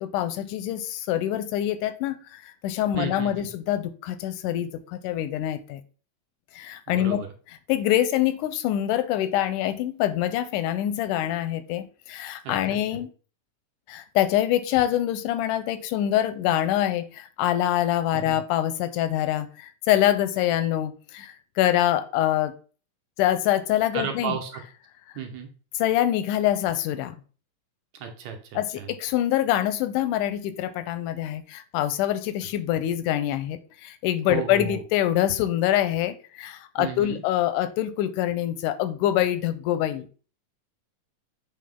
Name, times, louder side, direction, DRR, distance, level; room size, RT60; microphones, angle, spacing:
voice 1, 0.0-5.8 6.6-7.2 7.7-13.1 13.9-22.5 23.2-24.4 25.8-27.2 28.5-40.1, left 12 dB, 90° left, 11 dB, 2.1 m, -25 dB
voice 2, 3.0-3.5 6.9-7.3 12.5-12.6 18.1-18.4 23.9-24.6 25.2-25.5 28.0-28.9 34.3-34.8 36.8-37.2, right 8 dB, 70° right, 3 dB, 2.0 m, -33 dB
7.6 x 3.6 x 3.6 m, 0.38 s
omnidirectional pair, 3.6 m